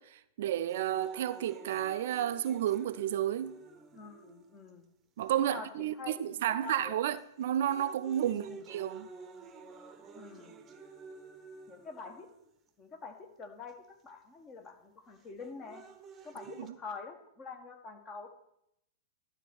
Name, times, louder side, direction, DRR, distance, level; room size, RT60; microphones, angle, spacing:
voice 1, 0.0-3.6 5.2-9.1 16.6-16.7, right 11 dB, 55° right, 0.4 m, -32 dB
sound 1, 0.7-4.7 5.4-5.5 6.4-6.7 7.2-12.7 13.7-13.8 15.2-16.7, right 4 dB, 20° right, 1.0 m, -50 dB
voice 2, 3.9-4.9 5.4-7.0 8.3-8.6 10.1-10.6 11.7-12.3 12.8-15.8 16.2-18.3, left 4 dB, 25° left, 1.6 m, -46 dB
12.0 x 4.3 x 7.9 m
figure-of-eight pair, 100°, 0 cm